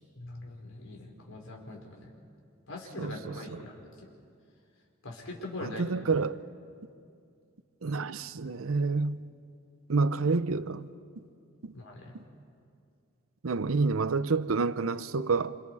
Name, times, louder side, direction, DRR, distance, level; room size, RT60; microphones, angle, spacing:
voice 1, 0.1-2.1 2.7-3.9 5.0-5.8 11.7-12.1, left 2 dB, 80° left, 4.6 m, -42 dB
voice 2, 3.0-3.4 5.6-6.4 7.8-9.2 9.9-10.9 11.6-11.7 13.4-15.6, right 4 dB, 85° right, 0.7 m, -28 dB
27.5 x 27.0 x 4.8 m
head